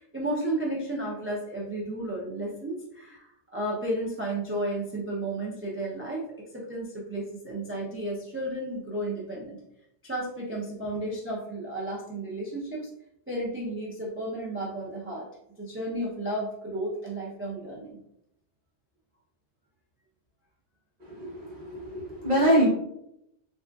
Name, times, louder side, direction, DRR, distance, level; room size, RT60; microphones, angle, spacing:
voice 1, 0.0-3.3 3.5-6.3 6.5-9.6 10.0-12.9 13.3-15.3 15.6-18.0, right 1 dB, 20° right, -4 dB, 0.3 m, -33 dB
voice 2, 21.1-22.7, right 1 dB, 50° right, -4 dB, 1.2 m, -25 dB
3.5 x 2.5 x 2.2 m, 0.79 s
omnidirectional pair, 1.2 m